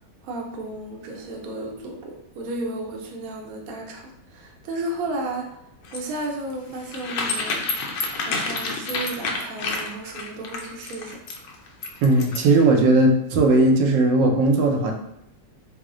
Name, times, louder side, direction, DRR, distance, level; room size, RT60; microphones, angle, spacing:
voice 1, 0.2-5.6 5.9-7.6 8.1-11.2, right 2 dB, 65° right, 0 dB, 0.9 m, -33 dB
sound 1, 5.8-12.6, left 3 dB, 80° left, 1.2 m, -29 dB
voice 2, 12.0-14.9, right 2 dB, 85° right, 2 dB, 1.3 m, -18 dB
3.0 x 2.1 x 3.6 m, 0.83 s
omnidirectional pair, 1.9 m